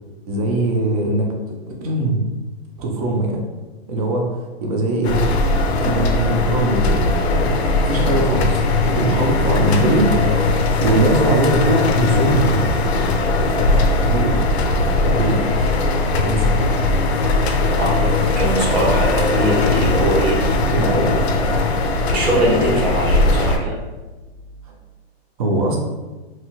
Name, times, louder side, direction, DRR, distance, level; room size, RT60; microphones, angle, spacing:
voice 1, 0.3-2.2 2.8-3.4 3.9-5.2 5.8-7.0 7.8-8.6 8.9-10.1 10.6-12.8 14.1-14.5 15.1-15.4 16.2-16.5 20.6-21.1 24.7-24.8 25.4-25.8, right 1 dB, 35° right, 0 dB, 0.5 m, -20 dB
sound 1, 5.0-23.6, left 2 dB, 90° left, 0.5 m, -19 dB
voice 2, 17.7-20.4 21.5-21.7 22.1-23.8, right 1 dB, 75° right, -3 dB, 1.1 m, -21 dB
2.7 x 2.3 x 2.9 m, 1.2 s
hypercardioid pair, 155°, 32 cm